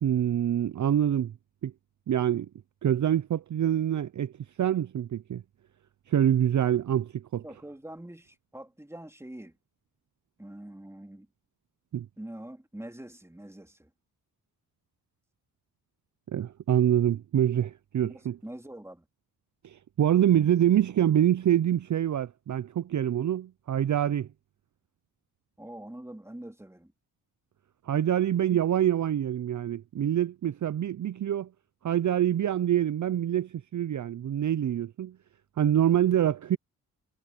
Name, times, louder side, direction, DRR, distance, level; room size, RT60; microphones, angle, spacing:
voice 1, 0.0-1.3 1.6-1.7 2.1-2.5 2.8-4.3 4.6-5.4 6.1-7.4 11.9-12.1 16.3-18.4 19.6-24.3 27.9-31.5 31.8-35.2 35.6-36.6, right 10 dB, 50° right, 0.7 m, -25 dB
voice 2, 7.4-9.6 10.4-11.3 12.2-13.9 18.0-19.0 25.6-26.9 28.4-28.6, right 1 dB, 5° right, 2.8 m, -44 dB
cardioid pair, 55°, 38 cm